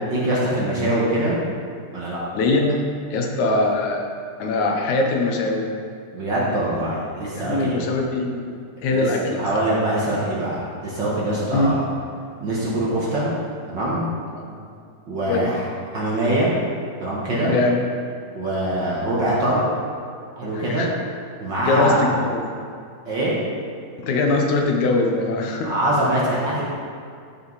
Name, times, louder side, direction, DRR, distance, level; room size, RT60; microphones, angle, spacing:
voice 1, 0.0-1.4 1.9-2.2 6.1-7.8 8.8-9.0 9.4-11.8 12.4-13.3 13.7-14.0 15.1-15.7 15.9-16.5 17.0-17.5 18.3-19.6 20.4-20.9 21.4-22.1 23.1-23.4 25.6-26.6, right 1 dB, 45° right, -7 dB, 1.8 m, -23 dB
voice 2, 2.4-2.8 3.1-4.1 4.4-5.7 7.4-8.5 8.8-9.5 11.5-11.7 14.4-14.6 15.3-15.5 17.5-17.8 20.5-20.9 21.7-22.5 24.0-25.7, left 2 dB, 75° left, 1 dB, 2.3 m, -22 dB
13.5 x 5.5 x 4.1 m, 2.3 s
omnidirectional pair, 3.5 m